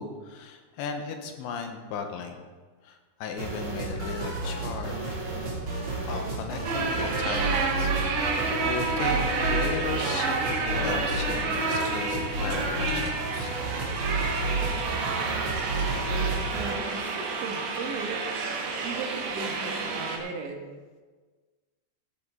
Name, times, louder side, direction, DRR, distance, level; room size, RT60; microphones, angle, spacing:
voice 1, 0.0-2.4 2.8-5.2 6.1-7.9 8.2-13.5, left 5 dB, 80° left, 5 dB, 3.4 m, -36 dB
sound 1, 3.4-16.8, right 2 dB, 30° right, 3.4 m, -31 dB
sound 2, 6.6-20.2, right 4 dB, 65° right, 3.7 m, -30 dB
voice 2, 16.5-18.3 18.8-20.6, right 3 dB, 80° right, 2 dB, 3.8 m, -37 dB
14.5 x 12.5 x 3.9 m, 1.4 s
omnidirectional pair, 5.3 m